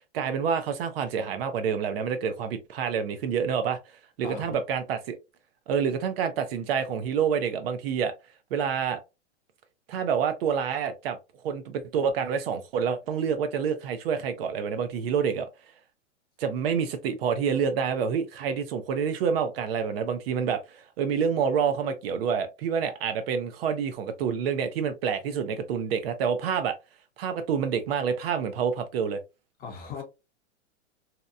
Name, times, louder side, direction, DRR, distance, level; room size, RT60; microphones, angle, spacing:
voice 1, 0.1-3.8 4.2-5.2 5.7-8.1 8.5-9.0 9.9-11.2 11.4-15.5 16.4-26.8 27.2-29.2, right 7 dB, 55° right, 0.5 m, -27 dB
voice 2, 4.2-4.6 29.6-30.0, left 5 dB, 25° left, 0.7 m, -38 dB
2.8 x 2.1 x 2.3 m
hypercardioid pair, 130°, 37 cm